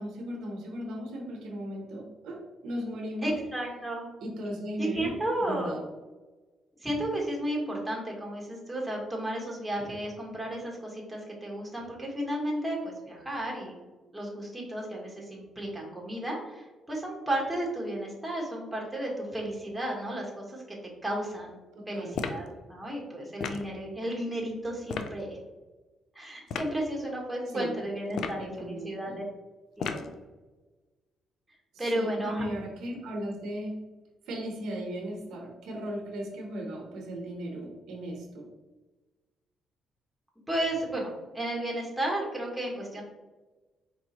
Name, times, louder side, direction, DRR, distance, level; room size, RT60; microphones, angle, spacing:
voice 1, 0.0-3.4 4.2-5.1 5.5-5.8 21.7-22.2 27.5-27.8 28.1-29.2 31.7-33.8 34.3-38.5, equal, 80° right, 1 dB, 0.8 m, -36 dB
voice 2, 3.2-4.1 4.8-5.7 6.8-13.8 14.1-20.8 21.0-21.6 21.9-25.4 26.1-29.2 29.8-30.0 31.8-32.4 40.5-43.0, right 1 dB, 5° right, -2 dB, 1.3 m, -33 dB
sound 1, 22.1-22.5 23.4-23.7 24.9-25.1 26.5-26.7 28.1-28.5 29.8-30.1, left 6 dB, 75° left, 0.4 m, -33 dB
4.6 x 3.0 x 2.9 m, 1.2 s
cardioid pair, 90°, 0 cm